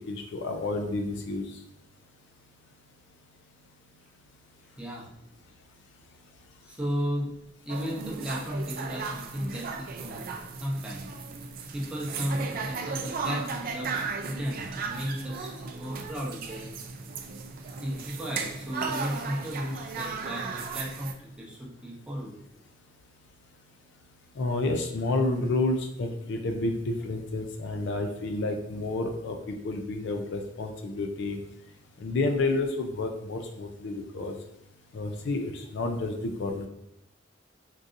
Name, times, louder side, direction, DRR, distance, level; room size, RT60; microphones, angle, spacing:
voice 1, 0.1-1.4 24.4-31.4 32.0-34.3 34.9-36.7, left 2 dB, 65° left, 5 dB, 0.4 m, -30 dB
voice 2, 6.6-7.3 7.6-10.3 10.6-11.1 11.7-16.8 17.7-22.4, equal, 5° right, -5 dB, 0.7 m, -34 dB
sound 1, 7.7-21.1, right 4 dB, 45° right, 0.4 m, -36 dB
3.7 x 2.6 x 2.5 m, 0.84 s
head